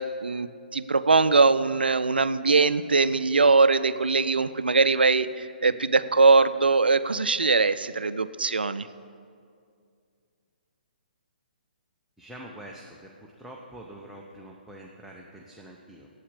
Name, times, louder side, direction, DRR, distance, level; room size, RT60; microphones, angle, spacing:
voice 1, 0.0-8.9, right 4 dB, 75° right, 14 dB, 0.4 m, -21 dB
voice 2, 12.2-16.1, right 1 dB, 5° right, -3 dB, 0.7 m, -45 dB
8.6 x 8.2 x 8.2 m, 2.3 s
figure-of-eight pair, 130°, 5 cm